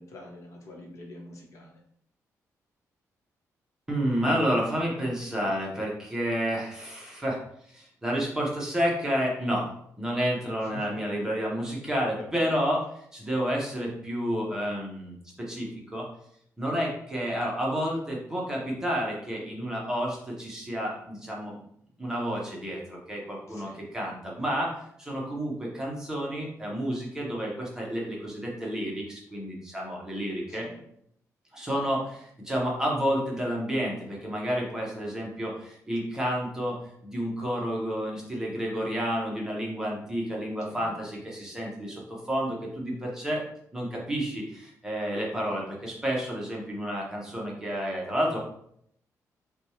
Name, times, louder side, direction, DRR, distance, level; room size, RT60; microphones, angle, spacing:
voice 1, 0.0-1.8 10.7-10.8 12.1-12.6 23.5-23.8 30.5-30.8 40.3-40.9, left 2 dB, 60° left, 0 dB, 1.0 m, -46 dB
voice 2, 3.9-9.7 10.0-16.1 16.6-21.5 22.0-30.7 31.5-36.8 37.0-43.4 43.7-48.4, equal, 10° right, -3 dB, 0.9 m, -30 dB
5.9 x 2.3 x 3.2 m, 0.70 s
wide cardioid pair, 170°, 6 cm